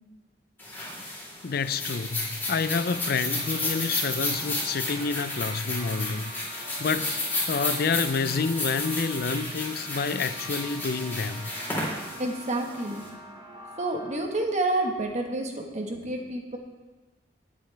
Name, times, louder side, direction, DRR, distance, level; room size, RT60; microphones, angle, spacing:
sound 1, 0.6-13.0, left 2 dB, 10° left, 3.9 m, -32 dB
voice 1, 1.4-11.5, left 4 dB, 60° left, 13 dB, 0.5 m, -29 dB
sound 2, 2.7-14.2, equal, 25° right, 1.2 m, -45 dB
voice 2, 12.2-13.0 13.8-16.6, right 2 dB, 40° right, 2 dB, 1.4 m, -29 dB
19.0 x 8.0 x 3.4 m, 1.2 s
head